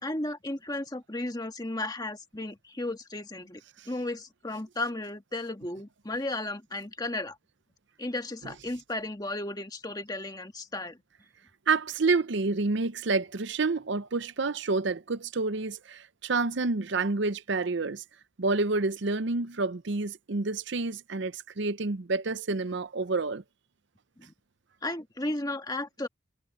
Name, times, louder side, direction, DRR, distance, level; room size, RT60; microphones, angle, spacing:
voice 1, 0.0-3.6 3.9-7.3 8.0-11.0 24.2-24.3 24.8-26.1, left 2 dB, 20° left, 1.6 m, -34 dB
voice 2, 11.7-18.0 18.4-23.4, right 3 dB, 60° right, 0.7 m, -28 dB
head